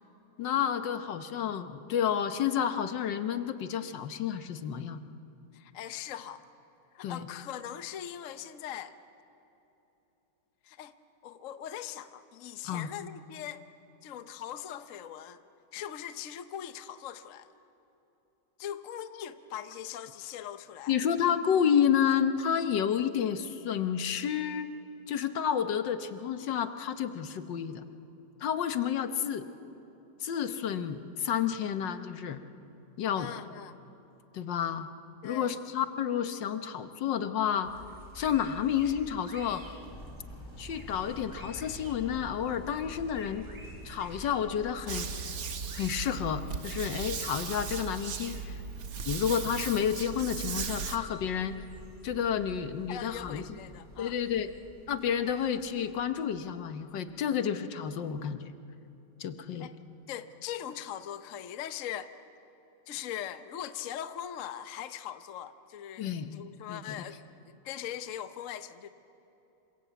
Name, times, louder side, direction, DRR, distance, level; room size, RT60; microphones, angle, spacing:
voice 1, 0.4-5.0 7.0-7.3 12.6-12.9 20.9-24.7 25.1-27.8 28.4-29.4 30.2-32.4 33.0-33.3 34.3-34.9 35.2-37.7 38.1-39.6 40.6-43.5 43.8-45.3 45.7-48.5 49.1-51.5 52.0-53.4 54.0-54.5 54.9-58.5 59.2-59.7 66.0-66.4 66.7-67.1, left 8 dB, 75° left, 10 dB, 1.7 m, -30 dB
voice 2, 5.5-6.4 6.9-9.0 10.6-10.9 11.2-13.6 14.0-15.4 15.7-17.5 18.6-21.0 33.2-33.8 35.2-35.5 52.9-54.2 59.6-59.7 60.1-62.1 62.9-67.2 67.4-68.9, left 10 dB, 55° left, 11 dB, 1.1 m, -41 dB
sound 1, 37.6-57.0, equal, 25° right, 3.3 m, -50 dB
sound 2, 39.9-45.9, equal, 15° left, 4.2 m, -49 dB
sound 3, 44.9-51.0, right 5 dB, 55° right, 1.6 m, -37 dB
27.5 x 25.0 x 8.2 m, 3.0 s
omnidirectional pair, 2.0 m